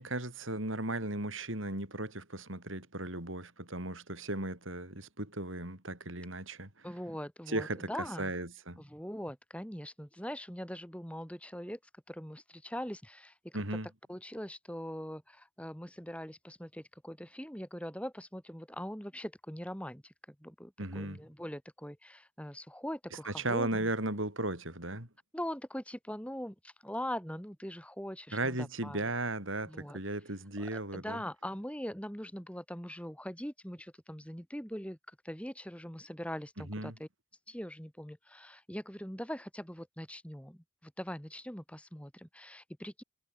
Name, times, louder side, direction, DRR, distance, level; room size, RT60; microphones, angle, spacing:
voice 1, 0.0-6.8 7.5-8.8 13.5-13.9 20.8-21.2 23.2-25.1 28.3-31.2 36.7-36.9, right 2 dB, 75° right, 6.8 m, -36 dB
voice 2, 6.8-8.3 8.8-11.8 12.1-13.8 14.1-20.1 20.4-23.9 25.3-29.1 29.7-30.0 30.6-37.1 37.5-43.0, equal, 5° left, 7.8 m, -42 dB
head